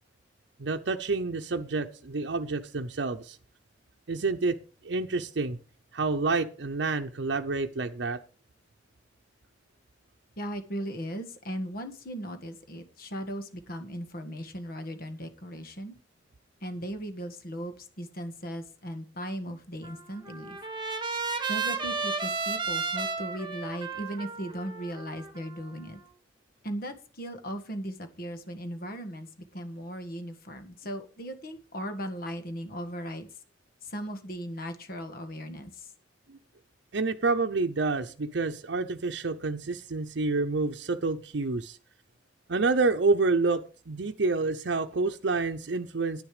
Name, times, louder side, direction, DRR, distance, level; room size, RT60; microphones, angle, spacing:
voice 1, 0.6-3.4 4.1-4.6 4.8-5.6 5.9-8.2 36.3-36.4 36.9-41.8 42.5-46.2, right 3 dB, 70° right, 5 dB, 0.7 m, -28 dB
voice 2, 10.4-15.9 16.6-20.6 21.5-26.0 26.6-33.3 33.8-35.9, equal, 55° left, 8 dB, 1.7 m, -37 dB
Trumpet, 19.8-26.0, right 4 dB, 25° right, 1.5 m, -33 dB
10.5 x 9.7 x 5.0 m, 0.37 s
head